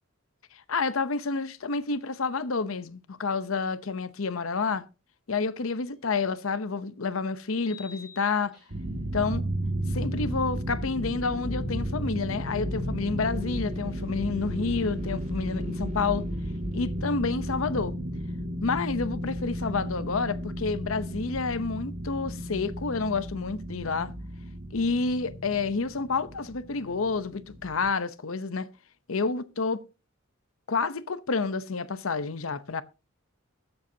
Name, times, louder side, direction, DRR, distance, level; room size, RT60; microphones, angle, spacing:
voice 1, 0.5-4.8 5.3-8.5 9.1-9.4 9.9-16.2 16.7-17.9 18.6-24.1 24.7-28.7 29.1-29.8 30.7-32.8, left 4 dB, 70° left, 0.8 m, -29 dB
sound 1, 5.9-6.0 7.6-9.0, left 4 dB, 5° right, 7.5 m, -50 dB
sound 2, 8.7-27.9, equal, 70° right, 1.9 m, -33 dB
sound 3, 10.5-19.1, left 1 dB, 35° right, 2.3 m, -45 dB
20.5 x 8.0 x 2.8 m
head